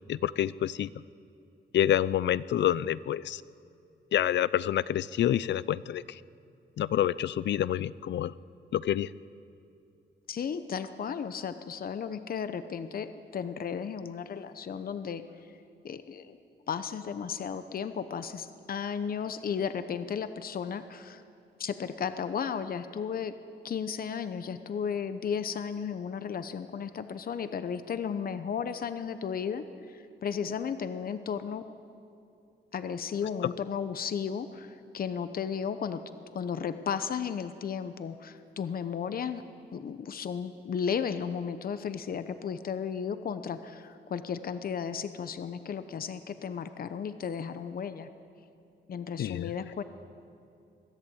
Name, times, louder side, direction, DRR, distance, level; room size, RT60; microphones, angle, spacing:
voice 1, 0.1-0.9 1.7-3.4 4.1-6.2 6.8-8.3 8.7-9.1 49.2-49.5, left 11 dB, 70° left, 19 dB, 0.5 m, -27 dB
voice 2, 10.3-15.2 15.8-16.4 16.7-21.2 21.6-23.3 23.6-31.6 32.7-36.0 36.3-39.4 39.7-48.1 48.9-49.8, left 7 dB, 50° left, 11 dB, 0.9 m, -34 dB
22.5 x 14.0 x 8.7 m, 2.6 s
wide cardioid pair, 125°, 19 cm